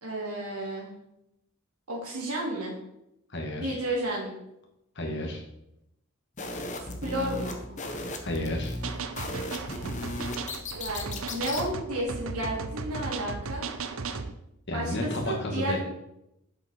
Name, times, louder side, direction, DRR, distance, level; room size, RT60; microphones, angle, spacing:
voice 1, 0.0-0.9 1.9-2.7 3.6-4.3 7.0-7.8 10.8-13.6 14.7-15.8, right 1 dB, 85° right, -3 dB, 3.4 m, -32 dB
voice 2, 3.3-3.8 5.0-5.4 8.2-8.7 14.7-15.8, left 1 dB, 50° left, 1 dB, 1.9 m, -31 dB
sound 1, 6.4-11.7, left 1 dB, 35° left, 1.0 m, -36 dB
sound 2, 8.8-14.3, right 4 dB, 65° right, 0.7 m, -36 dB
7.8 x 7.1 x 4.4 m, 0.84 s
head